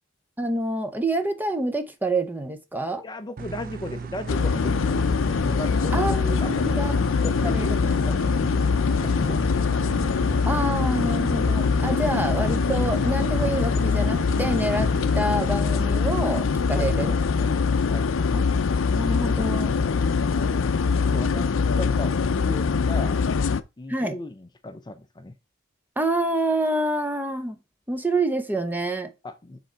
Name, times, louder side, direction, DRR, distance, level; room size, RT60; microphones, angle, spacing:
voice 1, 0.4-3.0 5.9-8.0 10.5-14.9 15.1-17.1 18.3-18.5 18.9-19.8 23.9-24.2 26.0-27.6 27.9-29.1, right 2 dB, 10° right, 0.8 m, -27 dB
voice 2, 3.0-6.9 7.2-7.7 8.0-8.6 8.9-9.9 11.9-12.0 16.7-17.6 17.9-18.1 19.8-20.8 21.1-23.2 23.8-25.3 29.2-29.6, left 2 dB, 20° left, 0.5 m, -37 dB
sound 1, 3.4-15.2, right 5 dB, 45° right, 0.4 m, -36 dB
sound 2, 4.3-23.6, left 5 dB, 70° left, 0.5 m, -23 dB
6.9 x 3.8 x 4.5 m
head